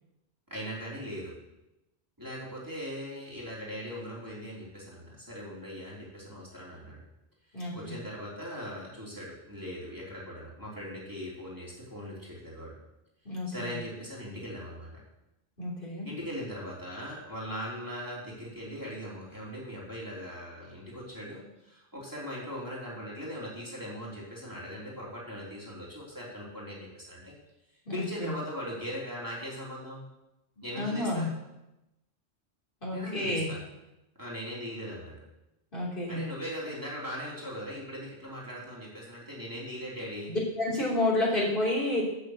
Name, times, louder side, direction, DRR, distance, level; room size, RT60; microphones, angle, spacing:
voice 1, 0.5-1.3 2.2-7.0 7.5-12.8 13.5-14.9 16.0-27.3 27.9-30.0 30.6-31.3 32.9-33.6 34.2-35.2 36.1-40.3, equal, 20° right, -6 dB, 3.2 m, -40 dB
voice 2, 7.5-7.9 13.2-13.7 15.6-16.1 27.9-28.3 30.8-31.3 32.8-33.5 35.7-36.3 40.3-42.0, left 1 dB, 55° left, -5 dB, 3.4 m, -30 dB
8.0 x 7.3 x 7.6 m, 0.92 s
omnidirectional pair, 1.1 m